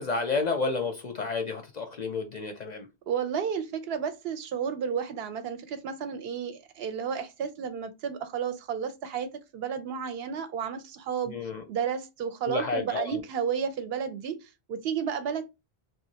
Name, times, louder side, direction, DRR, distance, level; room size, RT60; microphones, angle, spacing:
voice 1, 0.0-2.9 11.2-11.6 12.5-13.2, left 4 dB, 50° left, 0.5 m, -31 dB
voice 2, 3.1-11.3 11.7-15.5, right 7 dB, 70° right, 0.7 m, -32 dB
3.0 x 2.4 x 2.7 m
omnidirectional pair, 1.1 m